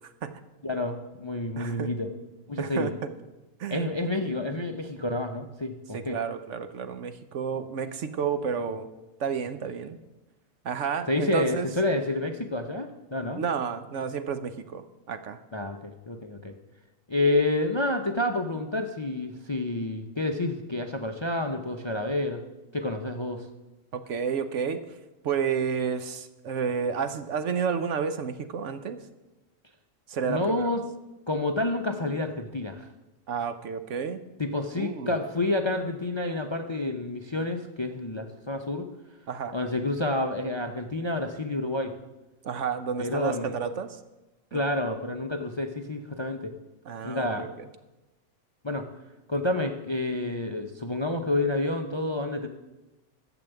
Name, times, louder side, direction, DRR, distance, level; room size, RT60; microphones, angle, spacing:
voice 1, 0.6-2.1 2.5-2.9 3.7-6.2 11.1-13.4 15.5-16.5 17.1-22.4 22.7-23.5 30.2-30.8 31.3-32.9 34.4-38.9 39.5-41.9 43.0-43.5 44.5-46.6 47.0-47.5 48.6-48.9 49.3-52.5, left 2 dB, 30° left, 6 dB, 0.5 m, -29 dB
voice 2, 1.6-1.9 2.6-3.1 3.6-3.8 4.3-4.5 5.9-8.9 9.2-10.0 10.6-11.7 13.4-14.8 15.1-15.4 23.9-24.8 25.2-29.0 30.1-30.7 33.3-34.2 34.7-35.2 39.3-39.5 42.4-43.9 44.5-44.7 46.9-47.5, right 6 dB, 65° right, 10 dB, 1.1 m, -31 dB
12.5 x 7.0 x 7.9 m, 1.0 s
omnidirectional pair, 1.4 m